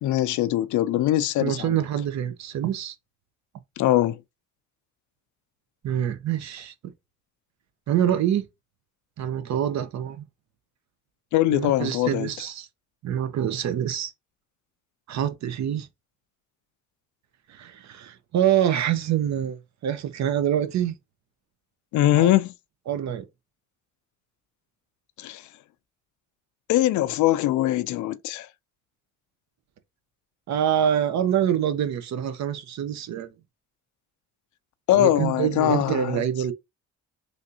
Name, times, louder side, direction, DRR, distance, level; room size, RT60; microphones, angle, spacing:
voice 1, 0.0-1.8 3.8-4.2 11.3-12.3 21.9-22.5 25.2-25.5 26.7-28.5 34.9-36.2, left 14 dB, 75° left, 0.5 m, -22 dB
voice 2, 1.4-2.9 5.8-6.7 7.9-8.5 9.2-10.2 11.5-12.7 13.0-14.1 15.1-15.9 17.5-19.6 19.8-20.9 22.1-22.3 22.9-23.2 30.5-33.3 34.9-36.5, right 10 dB, 65° right, 0.7 m, -25 dB
3.4 x 2.5 x 2.7 m
cardioid pair, 90°, 30 cm